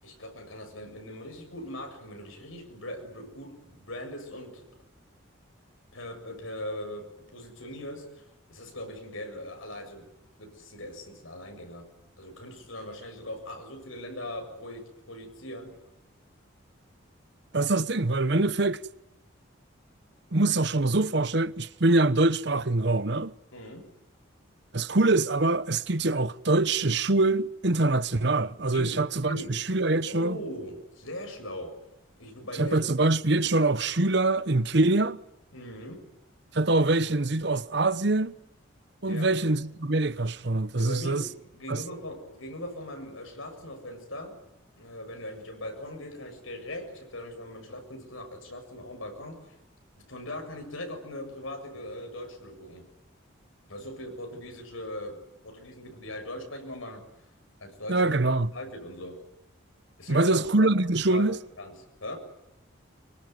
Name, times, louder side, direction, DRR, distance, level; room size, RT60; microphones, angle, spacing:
voice 1, 0.0-4.7 5.9-10.1 10.4-11.9 12.2-15.7 23.5-23.9 28.7-29.6 30.0-31.7 32.2-32.9 35.5-36.0 39.1-39.3 40.8-44.4 44.8-49.5 50.0-52.9 53.7-55.2 55.4-57.0 57.6-58.1 58.5-59.2 60.0-60.8 61.1-62.2, left 1 dB, 80° left, 7.3 m, -40 dB
voice 2, 17.5-18.8 20.3-23.3 24.7-30.4 32.6-35.2 36.5-38.3 39.0-41.2 41.7-41.8 57.9-58.5 60.1-61.4, right 2 dB, 55° right, 1.0 m, -24 dB
25.5 x 24.0 x 9.5 m
head